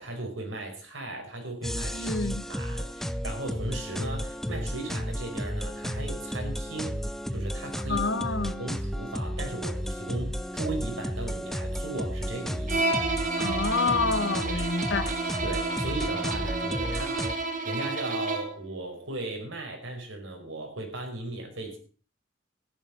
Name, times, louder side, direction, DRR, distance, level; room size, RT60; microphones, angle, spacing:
voice 1, 0.0-7.0 7.3-8.1 8.6-13.1 14.4-14.7 15.4-17.2 17.6-21.8, right 2 dB, 90° right, 5.3 m, -37 dB
sound 1, 1.6-17.4, equal, ahead, 0.6 m, -33 dB
voice 2, 1.9-2.5 7.9-8.6 13.4-15.1, left 4 dB, 70° left, 1.3 m, -28 dB
Bowed string instrument, 12.7-18.6, right 3 dB, 45° right, 1.7 m, -30 dB
14.0 x 10.5 x 5.3 m
head